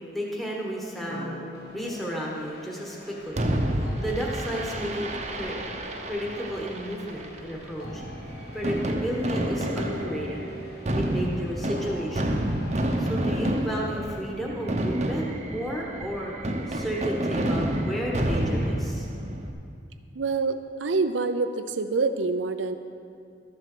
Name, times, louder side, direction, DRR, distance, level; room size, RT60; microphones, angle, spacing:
voice 1, 0.1-1.5 1.7-3.4 3.7-5.6 6.1-8.0 8.5-10.5 11.0-12.5 13.0-16.3 16.7-19.0, equal, ahead, -3 dB, 1.2 m, -32 dB
sound 1, 1.1-14.2, left 2 dB, 55° left, 1.3 m, -43 dB
Fireworks, 3.4-19.5, right 1 dB, 40° right, 0.8 m, -29 dB
voice 2, 20.1-22.8, right 4 dB, 90° right, 9 dB, 0.6 m, -26 dB
13.0 x 7.6 x 6.1 m, 2.4 s
head